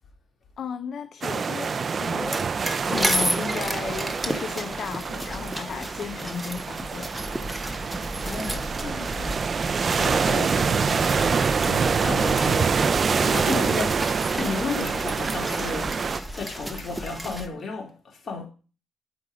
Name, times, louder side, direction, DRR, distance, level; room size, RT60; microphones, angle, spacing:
voice 1, 0.6-2.4 2.9-7.1, left 7 dB, 60° left, 0.5 m, -34 dB
sound 1, 1.2-16.2, right 5 dB, 40° right, 0.4 m, -26 dB
sound 2, 2.0-17.5, right 1 dB, 10° right, 1.0 m, -33 dB
voice 2, 8.2-9.5 10.0-12.8 13.2-14.0 14.4-16.0 16.3-18.5, left 4 dB, 40° left, 2.6 m, -33 dB
8.5 x 5.2 x 4.9 m
cardioid pair, 90°, 0 cm